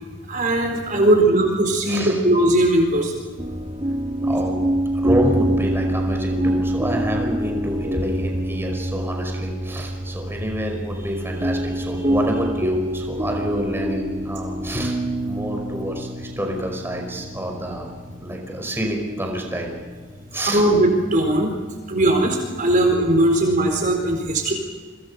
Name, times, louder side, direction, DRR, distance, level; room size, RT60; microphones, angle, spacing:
voice 1, 0.3-3.2 20.5-21.5 21.9-24.5, right 1 dB, 45° right, 2 dB, 4.5 m, -19 dB
voice 2, 1.8-2.2 4.2-4.6 4.9-15.0 15.2-17.9 18.2-19.7 20.3-20.7 24.4-24.5, equal, 10° right, 1 dB, 5.2 m, -28 dB
sound 1, 3.4-21.2, equal, 30° right, 1.6 m, -26 dB
29.5 x 25.5 x 5.7 m, 1.4 s
head